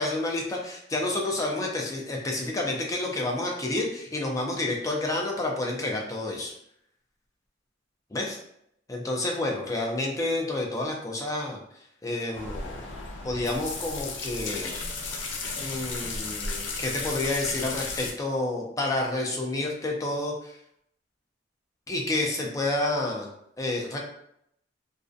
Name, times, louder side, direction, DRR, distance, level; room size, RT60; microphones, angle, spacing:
voice 1, 0.0-6.5 8.1-8.4 8.9-11.6 12.0-12.9 13.2-14.8 15.6-20.6 21.9-23.3 23.6-24.0, left 2 dB, 20° left, 0 dB, 0.4 m, -29 dB
sound 1, 12.3-18.1, left 3 dB, 80° left, 0.5 m, -34 dB
2.4 x 2.1 x 2.5 m, 0.73 s
head